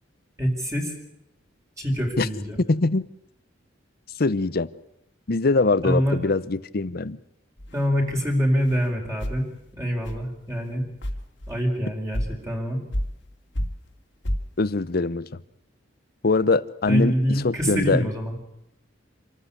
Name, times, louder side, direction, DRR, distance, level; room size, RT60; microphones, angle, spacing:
voice 1, 0.4-0.9 1.8-2.6 5.8-6.2 7.7-9.4 9.7-10.8 11.5-12.8 16.9-18.4, equal, 15° right, 0 dB, 4.6 m, -25 dB
voice 2, 2.7-3.1 4.2-4.7 5.3-7.2 14.6-15.3 16.2-18.0, left 3 dB, 55° left, 17 dB, 0.8 m, -22 dB
sound 1, 7.6-7.8 8.5-8.9 9.2-9.4 10.0-10.2 10.7-10.8 11.0-11.6 12.1-12.4 12.9-13.3 13.6-13.9 14.2-14.5, equal, 70° left, 2.4 m, -29 dB
27.0 x 13.5 x 9.9 m, 0.80 s
head